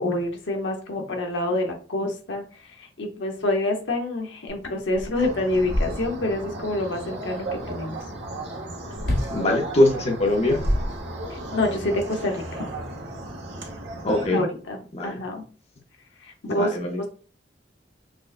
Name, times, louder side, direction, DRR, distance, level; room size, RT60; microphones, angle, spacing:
voice 1, 0.0-8.0 11.3-12.7 14.3-15.4 16.2-17.1, left 1 dB, 85° left, 2 dB, 0.9 m, -27 dB
sound 1, 4.5-4.6 4.9-6.4 9.0-9.4 10.3-11.5, equal, 65° left, 1.3 m, -27 dB
sound 2, 5.1-14.3, right 1 dB, 85° right, 1.1 m, -35 dB
voice 2, 9.3-10.6 14.0-14.4 14.9-15.2 16.5-17.0, left 1 dB, 35° left, 1 dB, 0.7 m, -22 dB
6.0 x 2.2 x 2.5 m, 0.39 s
head